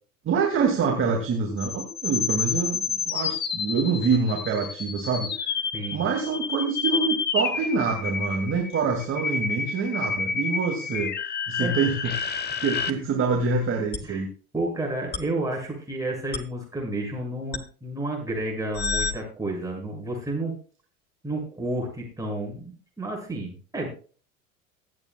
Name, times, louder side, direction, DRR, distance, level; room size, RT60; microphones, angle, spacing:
voice 1, 0.2-5.5 5.9-14.3, right 5 dB, 30° right, 1 dB, 2.5 m, -26 dB
sound 1, 1.6-12.9 13.9-14.0 15.1-15.2 16.3-16.4 17.5-17.6 18.7-19.1, left 6 dB, 25° left, 1.1 m, -29 dB
voice 2, 5.7-6.1 11.6-11.7 14.1-14.2 14.5-20.5 21.2-23.9, right 2 dB, 10° right, -1 dB, 7.0 m, -31 dB
23.5 x 8.8 x 2.3 m, 0.40 s
figure-of-eight pair, 75°, 42 cm